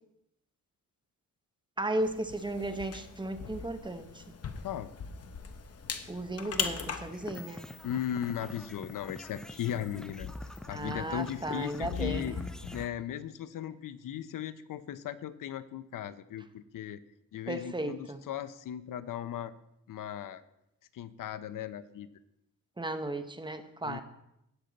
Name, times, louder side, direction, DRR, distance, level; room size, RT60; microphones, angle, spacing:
voice 1, 1.8-4.3 6.1-7.7 10.7-12.3 17.5-18.2 22.8-24.0, right 1 dB, 15° right, 8 dB, 0.8 m, -35 dB
sound 1, 2.0-12.8, left 5 dB, 45° left, 0.9 m, -41 dB
sound 2, 7.1-12.9, equal, ahead, 0.4 m, -47 dB
voice 2, 7.8-10.3 10.7-12.4 12.7-17.0 17.3-19.5 19.9-20.4 20.9-22.1 23.8-24.0, left 10 dB, 70° left, 14 dB, 0.6 m, -37 dB
17.5 x 6.6 x 4.0 m, 0.84 s
wide cardioid pair, 135°, 34 cm